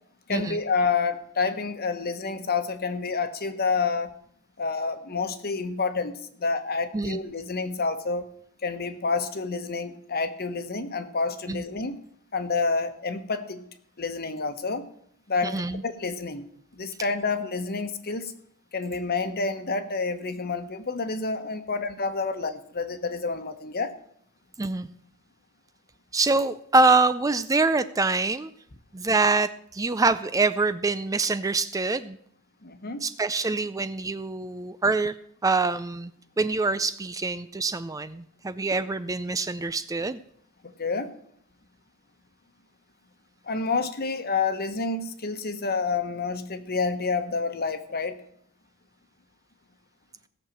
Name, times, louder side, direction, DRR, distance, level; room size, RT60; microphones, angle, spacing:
voice 1, 0.3-4.1 4.6-8.3 8.6-12.0 12.3-13.6 14.0-14.8 15.3-16.5 16.7-18.3 18.7-23.9 32.6-33.0 40.6-41.1 43.4-48.2, left 4 dB, 45° left, 9 dB, 1.3 m, -29 dB
voice 2, 15.4-15.8 24.6-24.9 26.1-28.5 28.9-32.2 33.0-35.1 35.4-36.1 36.4-40.2, right 3 dB, 15° right, 13 dB, 0.4 m, -25 dB
17.5 x 6.6 x 7.6 m, 0.66 s
head